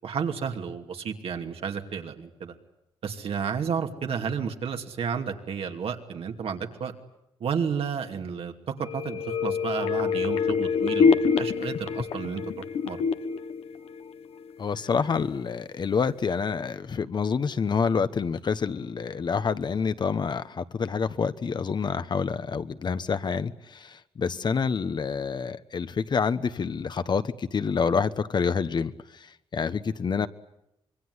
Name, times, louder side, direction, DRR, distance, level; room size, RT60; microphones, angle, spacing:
voice 1, 0.0-2.5 3.0-6.9 7.4-13.1, right 6 dB, 70° right, 2.7 m, -32 dB
sound 1, 8.8-14.5 14.9-15.0, left 5 dB, 80° left, 1.3 m, -26 dB
voice 2, 14.6-30.3, left 5 dB, 50° left, 1.1 m, -27 dB
25.5 x 23.0 x 9.8 m
cardioid pair, 100°, 10 cm